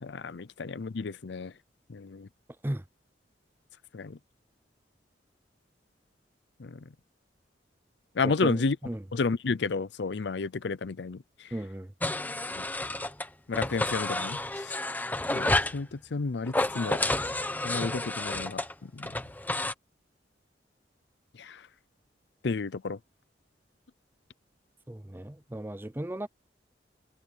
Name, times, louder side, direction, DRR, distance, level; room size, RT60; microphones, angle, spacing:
voice 1, 0.0-1.5 1.9-2.3 3.9-4.2 6.6-6.8 8.2-8.8 9.1-11.5 12.6-12.7 13.5-14.8 15.3-17.0 17.6-19.1 21.4-21.7 22.4-23.0, left 4 dB, 65° left, 0.6 m, -32 dB
voice 2, 8.2-9.0 11.5-11.9 24.9-26.3, right 1 dB, 10° right, 0.6 m, -35 dB
sound 1, 12.0-13.3 13.5-15.8 16.5-19.7, left 2 dB, 10° left, 1.0 m, -30 dB
head